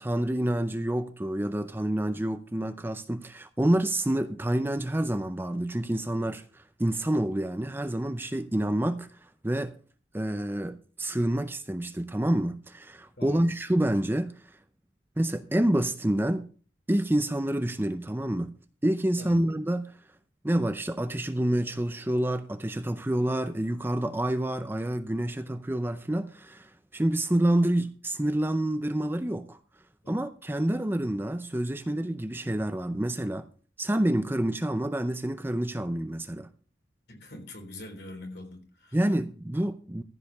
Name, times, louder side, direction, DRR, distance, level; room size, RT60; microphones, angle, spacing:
voice 1, 0.0-9.8 10.1-14.3 15.2-16.5 16.9-18.5 18.8-19.9 20.4-29.6 30.1-33.5 33.8-36.5 38.9-40.0, right 1 dB, 10° right, 0.5 m, -28 dB
voice 2, 13.2-13.5 19.2-19.5 30.0-30.2 37.1-39.0, left 1 dB, 60° left, 3.7 m, -43 dB
15.0 x 5.0 x 7.1 m
head